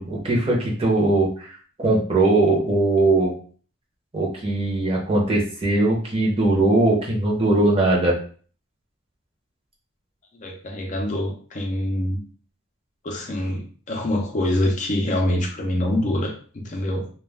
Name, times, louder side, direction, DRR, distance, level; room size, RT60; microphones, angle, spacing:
voice 1, 0.0-1.5 1.8-3.3 4.1-8.2, right 2 dB, 30° right, -3 dB, 0.7 m, -20 dB
voice 2, 10.3-12.2 13.0-17.1, left 1 dB, 35° left, 1 dB, 0.5 m, -25 dB
2.2 x 2.2 x 3.3 m, 0.42 s
head